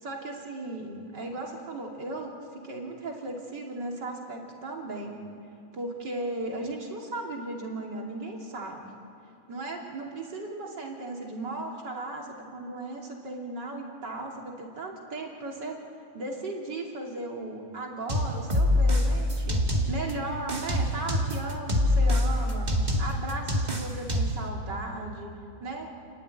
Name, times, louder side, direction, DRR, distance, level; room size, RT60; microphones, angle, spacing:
voice 1, 0.0-5.2 5.7-8.8 9.5-15.8 16.1-22.7 23.0-25.3 25.6-25.9, right 2 dB, 60° right, 0 dB, 3.5 m, -36 dB
sound 1, 18.1-20.1 20.5-24.5, left 1 dB, 20° right, 2.1 m, -25 dB
30.0 x 12.5 x 9.7 m, 2.9 s
omnidirectional pair, 2.2 m